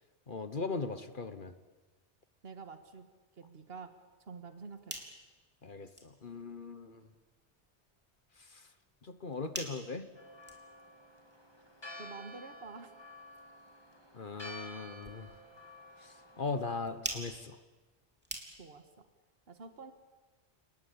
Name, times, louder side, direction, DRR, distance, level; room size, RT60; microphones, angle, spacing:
voice 1, 0.3-1.5 5.6-7.1 8.4-8.6 9.0-10.1 14.1-15.3 16.0-17.6, left 4 dB, 50° left, 11 dB, 1.3 m, -39 dB
voice 2, 2.4-3.1 3.4-3.9 4.3-5.0 12.0-12.9 18.6-19.1 19.5-19.9, right 4 dB, 60° right, 8 dB, 1.9 m, -48 dB
sound 1, 4.7-18.9, equal, 10° right, 3.4 m, -49 dB
Church bell, 10.1-16.8, left 1 dB, 20° left, 2.4 m, -51 dB
29.5 x 19.5 x 8.7 m, 1.2 s
omnidirectional pair, 1.2 m